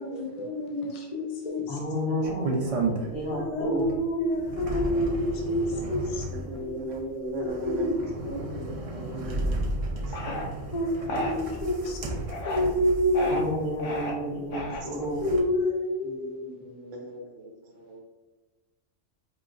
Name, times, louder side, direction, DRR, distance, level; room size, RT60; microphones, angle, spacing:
voice 1, 0.0-1.8 3.3-6.3 6.6-6.7 7.4-7.9 8.2-8.4 10.1-10.4 10.7-12.0 12.5-13.3 15.2-16.4, left 1 dB, 40° left, -1 dB, 0.7 m, -28 dB
voice 2, 1.7-3.8 6.5-6.6 13.3-15.2, equal, 60° left, -5 dB, 1.7 m, -31 dB
sound 1, 2.2-3.4 3.8-14.0 14.7-15.4, right 2 dB, 40° right, 0.5 m, -33 dB
voice 3, 3.0-3.5 4.9-5.1 6.3-8.1 8.5-9.6 14.8-14.9 16.0-18.0, right 1 dB, 80° right, 1 dB, 1.2 m, -38 dB
sound 2, 10.1-10.5 11.1-11.3 12.2-12.7 13.1-13.4 13.8-14.1 14.5-15.0, left 1 dB, 80° left, 1.1 m, -32 dB
4.9 x 3.0 x 2.5 m, 1.2 s
omnidirectional pair, 1.3 m